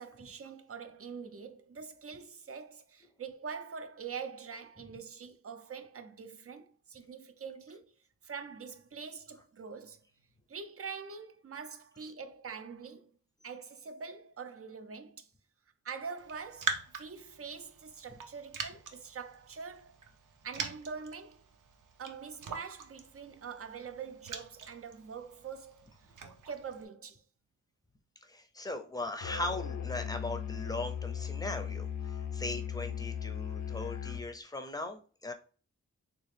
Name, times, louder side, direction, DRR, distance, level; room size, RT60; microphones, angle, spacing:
voice 1, 0.0-7.9 8.2-10.0 10.5-13.1 13.4-15.3 15.8-20.0 20.4-21.4 22.0-26.1 26.5-27.2, right 6 dB, 50° right, 0.5 m, -44 dB
Raindrop, 16.2-26.8, right 5 dB, 90° right, 0.6 m, -43 dB
voice 2, 28.2-35.3, left 2 dB, 10° left, 0.6 m, -39 dB
Musical instrument, 29.2-34.3, left 8 dB, 65° left, 0.5 m, -37 dB
3.6 x 2.4 x 3.3 m
wide cardioid pair, 90°, 31 cm